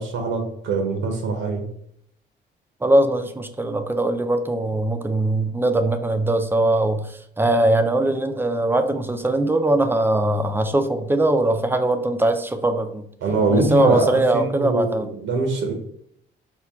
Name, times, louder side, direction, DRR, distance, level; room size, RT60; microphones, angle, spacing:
voice 1, 0.0-1.7 13.2-15.7, right 3 dB, 80° right, 3 dB, 0.8 m, -23 dB
voice 2, 2.8-13.0 13.5-15.1, right 1 dB, 10° right, 7 dB, 0.4 m, -21 dB
4.4 x 2.2 x 3.4 m, 0.71 s
cardioid pair, 90°, 20 cm